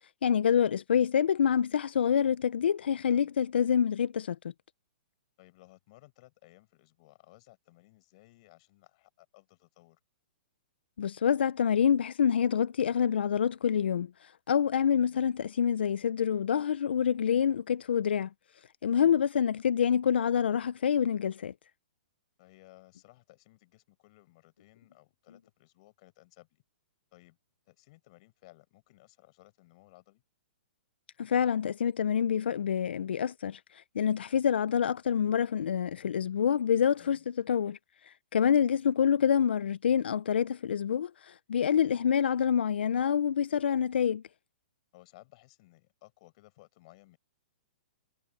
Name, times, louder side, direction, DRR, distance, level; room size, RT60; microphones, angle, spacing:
voice 1, 0.2-4.4 11.0-18.3 18.8-21.5 31.2-37.8 38.0-44.2, left 8 dB, 85° left, 0.5 m, -27 dB
voice 2, 5.4-10.0 14.9-15.3 18.9-19.2 22.4-26.6 27.1-27.4 27.7-30.2 37.0-37.3 41.7-42.1 44.9-47.2, left 21 dB, 40° left, 7.5 m, -59 dB
hypercardioid pair, 160°, 6 cm